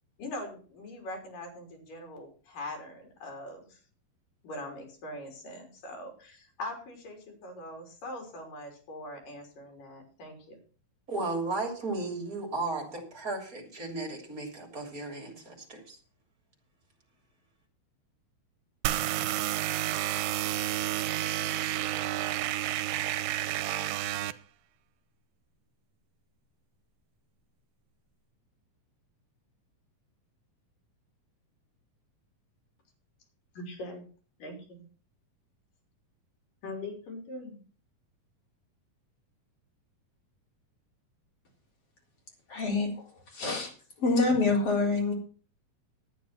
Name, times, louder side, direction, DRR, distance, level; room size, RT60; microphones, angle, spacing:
voice 1, 0.2-3.8 4.4-10.6 33.6-34.0 34.4-34.9 36.6-37.6, left 1 dB, 70° left, 3 dB, 5.2 m, -42 dB
voice 2, 11.1-16.0, right 2 dB, 25° right, 2 dB, 3.4 m, -35 dB
sound 1, 18.9-24.3, right 14 dB, 85° right, 2.4 m, -30 dB
voice 3, 42.5-42.9 43.3-43.7 44.0-45.1, left 3 dB, 45° left, 0 dB, 4.9 m, -26 dB
11.5 x 9.3 x 5.8 m, 0.39 s
omnidirectional pair, 4.0 m